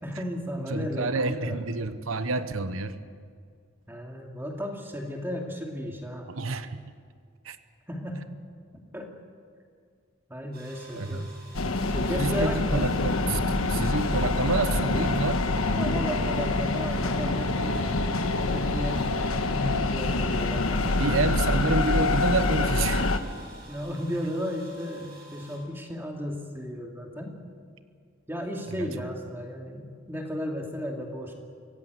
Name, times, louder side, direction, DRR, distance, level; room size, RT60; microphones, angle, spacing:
voice 1, 0.0-1.6 3.9-6.3 7.9-8.3 8.9-9.1 10.3-11.3 11.9-12.9 13.4-13.6 15.7-18.1 18.5-21.1 23.7-27.3 28.3-31.3, equal, 10° right, 1 dB, 2.4 m, -34 dB
voice 2, 0.7-3.0 6.3-6.8 7.4-7.6 10.9-11.3 12.2-13.4 13.7-15.4 20.8-23.1 28.7-28.9, right 3 dB, 70° right, 11 dB, 1.0 m, -28 dB
sound 1, 10.5-25.6, right 1 dB, 45° right, 6.1 m, -50 dB
sound 2, 11.5-23.2, left 2 dB, 80° left, 1.3 m, -26 dB
25.0 x 17.0 x 8.1 m, 2.1 s
head